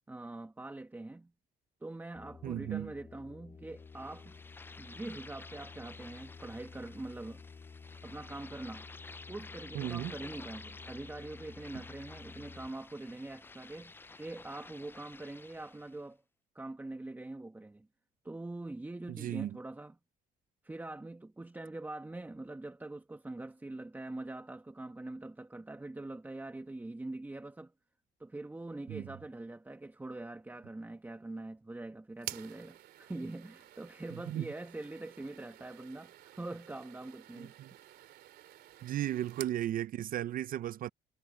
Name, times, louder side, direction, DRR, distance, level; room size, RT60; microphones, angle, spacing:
voice 1, 0.1-1.3 1.8-4.3 4.8-7.4 8.0-8.9 9.3-16.2 16.5-17.9 18.2-19.9 20.6-27.7 28.2-37.5 37.8-38.0, right 2 dB, 10° right, 1.5 m, -44 dB
sound 1, 2.1-12.7, left 5 dB, 30° left, 3.4 m, -52 dB
voice 2, 2.4-2.9 9.7-10.1 19.1-19.5 28.9-29.0 34.3-34.5 37.3-37.7 38.8-40.9, right 12 dB, 55° right, 0.6 m, -35 dB
sound 2, 3.8-16.0, left 3 dB, 15° left, 0.5 m, -52 dB
sound 3, 32.2-39.6, right 13 dB, 70° right, 3.1 m, -50 dB
cardioid pair, 110°, 17 cm